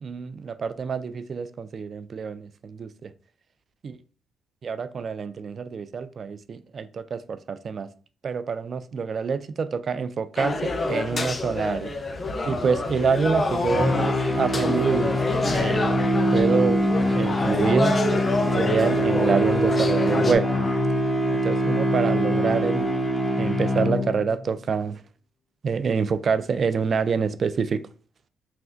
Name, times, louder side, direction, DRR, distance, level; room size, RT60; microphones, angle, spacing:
voice 1, 0.0-1.0 1.3-3.1 3.8-4.0 4.6-7.9 8.2-11.9 12.5-15.2 15.4-16.0 16.3-16.8 17.1-18.3 18.6-20.5 21.3-22.9 23.4-25.0 25.6-27.8, right 5 dB, 45° right, 0.3 m, -26 dB
sound 1, 10.4-20.4, left 2 dB, 35° left, 0.5 m, -28 dB
sound 2, 13.6-24.4, equal, 5° left, 1.1 m, -24 dB
5.8 x 2.1 x 2.5 m
cardioid pair, 90°, 0 cm